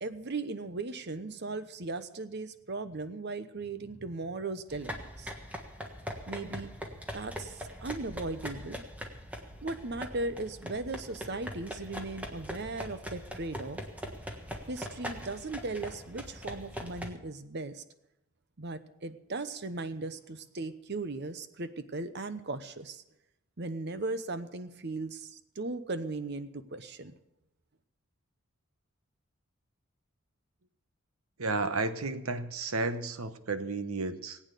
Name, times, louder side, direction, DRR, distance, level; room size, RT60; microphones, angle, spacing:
voice 1, 0.0-5.3 6.3-6.7 7.1-8.9 9.6-13.8 14.7-17.8 18.6-23.0 23.6-27.1, right 3 dB, 50° right, 11 dB, 0.9 m, -37 dB
sound 1, 4.7-17.1, equal, 5° right, 1.4 m, -42 dB
voice 2, 31.4-34.4, right 3 dB, 85° right, 11 dB, 1.1 m, -32 dB
19.0 x 8.8 x 6.8 m, 0.86 s
head